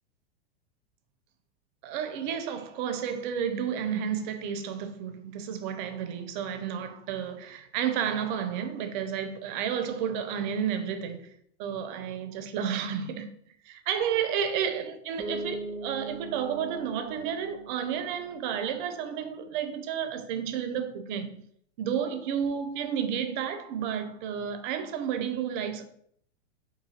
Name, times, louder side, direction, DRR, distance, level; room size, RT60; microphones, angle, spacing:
voice 1, 1.8-11.3 11.6-13.3 13.6-21.4 21.8-25.9, right 8 dB, 45° right, 0.5 m, -31 dB
Bass guitar, 15.2-18.9, right 2 dB, 5° left, 1.1 m, -40 dB
3.7 x 2.7 x 2.8 m
hypercardioid pair, 125°, 35 cm